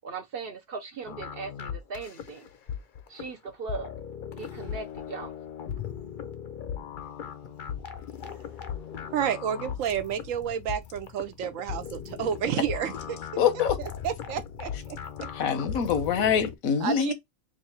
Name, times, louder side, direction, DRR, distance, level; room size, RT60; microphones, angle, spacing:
voice 1, 0.0-2.4 3.1-3.9 4.4-5.3, right 4 dB, 60° right, 0.6 m, -38 dB
sound 1, 1.1-16.6, left 8 dB, 60° left, 0.5 m, -38 dB
voice 2, 9.1-13.2 13.5-15.0 16.8-17.1, right 9 dB, 75° right, 1.0 m, -30 dB
voice 3, 13.4-13.8 15.3-17.1, left 7 dB, 90° left, 1.2 m, -24 dB
3.1 x 2.4 x 4.1 m
omnidirectional pair, 1.4 m